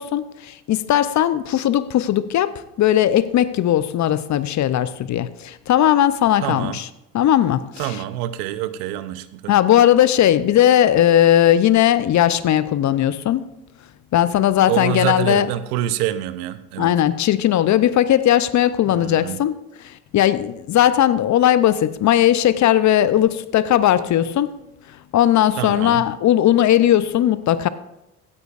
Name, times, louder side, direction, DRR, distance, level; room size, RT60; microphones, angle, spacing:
voice 1, 0.0-6.9 7.1-8.0 9.5-13.4 14.1-15.5 16.8-19.6 19.8-24.5 25.1-27.7, left 11 dB, 40° left, 0.6 m, -18 dB
voice 2, 6.4-6.8 7.8-9.5 14.7-16.9 18.9-19.4 25.6-26.1, right 12 dB, 75° right, 0.8 m, -26 dB
16.0 x 9.6 x 2.5 m
hypercardioid pair, 70°, 45 cm